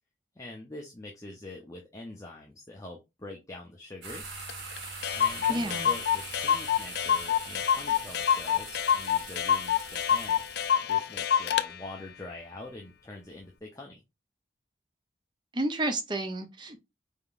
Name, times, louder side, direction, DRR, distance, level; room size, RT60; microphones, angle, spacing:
voice 1, 0.4-4.4 5.1-10.4 10.8-14.0, left 2 dB, 20° left, 0.6 m, -44 dB
sound 1, 4.0-10.8, right 4 dB, 80° right, 1.6 m, -43 dB
Clock, 4.5-4.6 4.8-4.9 5.0-11.7, left 8 dB, 65° left, 0.4 m, -27 dB
voice 2, 5.5-5.9 15.5-16.8, right 1 dB, 25° right, 0.5 m, -31 dB
4.5 x 3.6 x 2.4 m
head